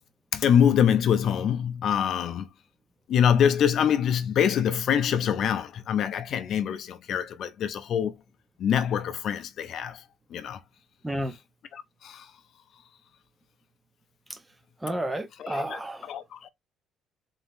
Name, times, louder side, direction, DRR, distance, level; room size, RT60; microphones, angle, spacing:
voice 1, 0.3-2.5 3.1-8.1 8.6-10.0 10.3-10.6 11.7-12.3 15.4-16.5, left 8 dB, 50° left, 0.5 m, -25 dB
voice 2, 14.8-16.1, right 1 dB, 10° right, 0.6 m, -31 dB
3.9 x 3.8 x 2.5 m
cardioid pair, 150°, 0 cm